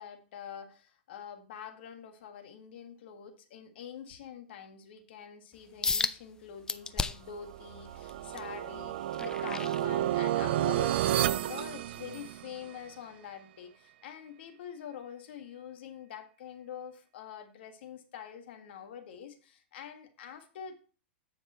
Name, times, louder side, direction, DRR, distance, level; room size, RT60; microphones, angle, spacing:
voice 1, 0.0-20.7, left 8 dB, 65° left, 6 dB, 1.7 m, -45 dB
sound 1, 5.8-6.2 6.7-7.4 7.9-10.4 10.9-11.1 11.7-11.8, left 4 dB, 10° left, 0.5 m, -34 dB
sound 2, 7.4-12.6, right 13 dB, 65° right, 0.4 m, -31 dB
9.8 x 5.3 x 4.3 m, 0.38 s
hypercardioid pair, 125°, 6 cm